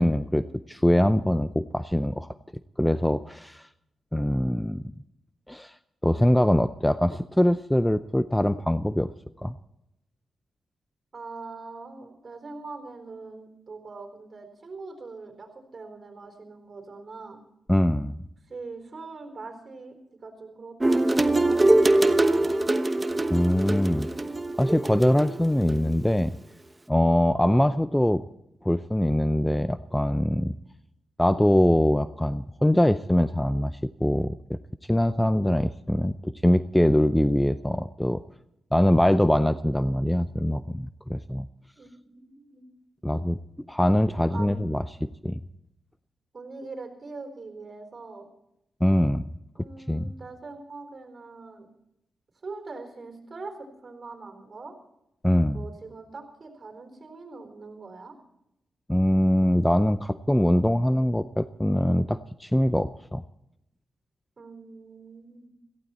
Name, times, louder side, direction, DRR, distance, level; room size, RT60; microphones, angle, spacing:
voice 1, 0.0-2.3 2.8-3.7 4.1-4.8 5.5-5.7 6.0-9.1 9.4-9.6 17.7-18.2 23.3-24.1 24.6-26.4 26.9-28.2 28.6-30.5 31.2-34.6 34.9-38.2 38.7-41.5 43.0-43.4 43.7-45.4 48.8-49.2 49.9-50.1 55.2-55.6 58.9-63.2, left 1 dB, 5° left, 13 dB, 0.5 m, -23 dB
voice 2, 11.1-17.4 18.5-22.6 41.8-42.6 44.3-44.6 46.3-48.3 49.6-51.7 52.4-54.8 55.5-58.2 64.4-65.5, right 3 dB, 45° right, 5 dB, 4.0 m, -42 dB
sound 1, 20.8-25.8, right 2 dB, 20° right, 1.0 m, -23 dB
17.5 x 15.0 x 4.3 m, 0.83 s
supercardioid pair, 50°, 0 cm